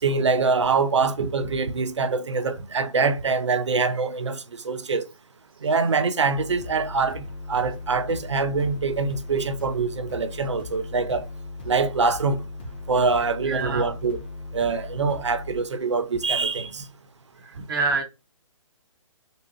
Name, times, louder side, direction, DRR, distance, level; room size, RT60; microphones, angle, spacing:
voice 1, 0.0-5.1 5.6-11.3 11.7-12.4 12.9-14.2 14.5-16.9, right 4 dB, 60° right, 0.6 m, -24 dB
sound 1, 6.4-15.6, left 3 dB, 20° left, 0.4 m, -38 dB
voice 2, 13.5-13.9 17.5-18.0, right 4 dB, 45° right, 0.9 m, -26 dB
4.1 x 2.2 x 2.7 m
figure-of-eight pair, 135°, 17 cm